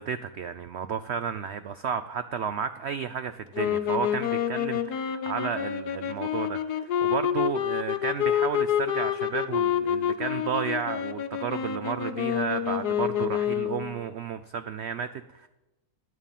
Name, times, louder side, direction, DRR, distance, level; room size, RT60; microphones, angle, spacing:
voice 1, 0.0-15.5, right 7 dB, 85° right, 11 dB, 0.5 m, -32 dB
sound 1, 3.5-13.9, left 9 dB, 70° left, 1.3 m, -28 dB
13.0 x 9.1 x 7.3 m, 1.0 s
omnidirectional pair, 1.8 m